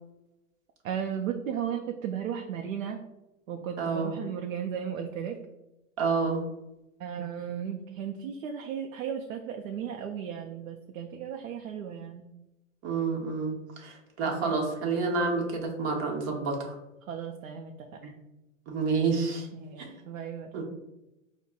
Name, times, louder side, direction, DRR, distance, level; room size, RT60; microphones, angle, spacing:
voice 1, 0.8-3.0 3.5-5.4 7.0-12.2 14.2-14.5 17.1-17.7 19.6-20.5, right 8 dB, 75° right, 4 dB, 0.5 m, -35 dB
voice 2, 3.8-4.1 6.0-6.4 12.8-16.8 18.0-18.1 18.7-19.5 19.8-19.9 20.5-20.6, right 4 dB, 35° right, 0 dB, 0.9 m, -29 dB
5.2 x 2.1 x 2.3 m, 0.94 s
hypercardioid pair, 120°, 40 cm